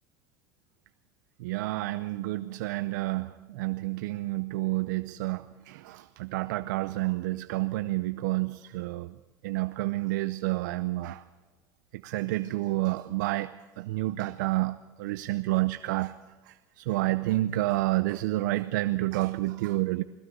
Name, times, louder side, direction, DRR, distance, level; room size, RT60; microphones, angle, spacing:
voice 1, 1.4-9.1 9.4-11.2 12.0-16.1 16.5-20.0, right 18 dB, 85° right, 0.6 m, -29 dB
21.0 x 15.5 x 8.1 m
supercardioid pair, 110°, 10 cm